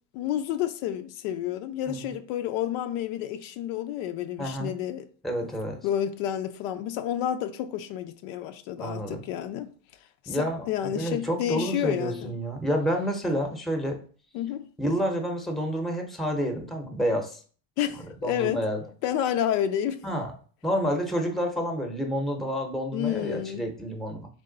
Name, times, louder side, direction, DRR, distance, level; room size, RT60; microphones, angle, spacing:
voice 1, 0.1-5.1 5.8-9.7 10.2-12.3 14.3-14.7 17.8-18.7 19.0-20.0 22.9-23.6, left 11 dB, 85° left, 0.6 m, -30 dB
voice 2, 4.4-4.7 5.2-5.8 8.8-9.2 10.3-14.0 14.8-17.4 17.9-18.8 20.0-20.3 20.6-24.3, equal, ahead, 0.7 m, -29 dB
3.5 x 3.2 x 3.8 m
supercardioid pair, 115°, 40 cm